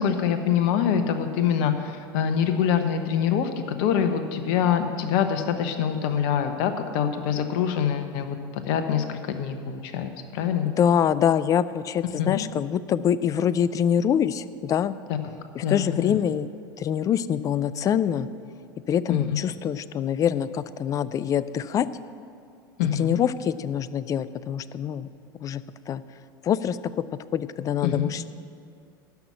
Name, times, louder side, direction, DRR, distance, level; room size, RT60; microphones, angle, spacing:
voice 1, 0.0-3.5 3.8-10.7 12.2-12.4 15.2-15.3 15.6-16.1 19.1-19.4 22.8-23.2 27.8-28.1, left 8 dB, 50° left, 8 dB, 1.1 m, -25 dB
voice 2, 10.8-14.9 15.5-16.5 16.8-18.3 18.9-21.9 22.9-25.1 25.4-26.0 26.4-26.8 27.3-28.2, left 9 dB, 30° left, 16 dB, 0.4 m, -25 dB
13.0 x 5.9 x 9.2 m, 2.4 s
figure-of-eight pair, 80°, 12 cm